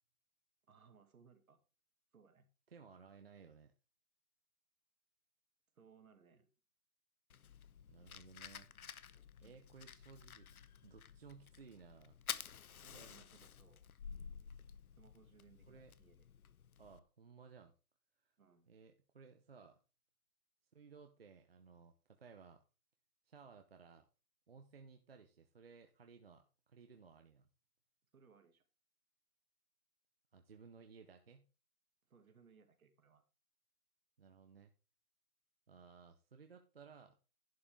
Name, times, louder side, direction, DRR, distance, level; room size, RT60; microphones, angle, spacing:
voice 1, 0.7-1.6 2.1-2.5 5.7-6.5 9.4-9.6 12.8-13.9 15.0-16.3 18.4-18.8 28.1-28.6 32.0-33.2, right 6 dB, 65° right, 7 dB, 2.1 m, -66 dB
voice 2, 2.7-3.7 7.9-8.7 9.4-10.5 10.8-12.2 12.9-13.1 15.7-15.9 16.8-17.7 18.2-18.3 18.7-19.8 20.7-22.6 23.3-24.1 24.5-27.5 30.3-31.5 34.2-34.7 35.7-37.2, right 5 dB, 40° right, 5 dB, 0.8 m, -59 dB
Fire, 7.3-17.0, left 7 dB, 65° left, 0.8 m, -51 dB
11.5 x 7.8 x 3.5 m, 0.32 s
hypercardioid pair, 175°, 46 cm